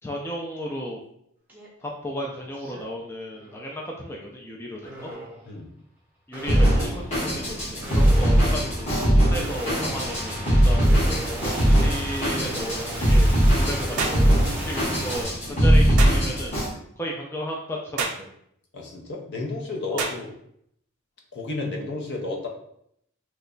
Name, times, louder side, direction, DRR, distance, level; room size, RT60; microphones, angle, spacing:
voice 1, 0.0-1.0 1.8-5.1 6.3-14.3 14.6-16.5 17.0-18.3 19.9-20.1, equal, 10° left, -1 dB, 0.3 m, -34 dB
sound 1, 1.5-1.7 2.1-2.8 3.3-3.8 4.8-5.4 6.3-15.2, right 1 dB, 10° right, 0.7 m, -35 dB
Drum kit, 6.5-16.7, equal, 30° left, 1.2 m, -20 dB
sound 2, 14.0-14.2 16.0-16.2 18.0-18.2 20.0-20.2, right 5 dB, 85° right, 0.5 m, -28 dB
voice 2, 18.7-20.3 21.3-22.5, left 2 dB, 55° left, 0 dB, 0.7 m, -32 dB
3.1 x 2.2 x 3.7 m, 0.71 s
head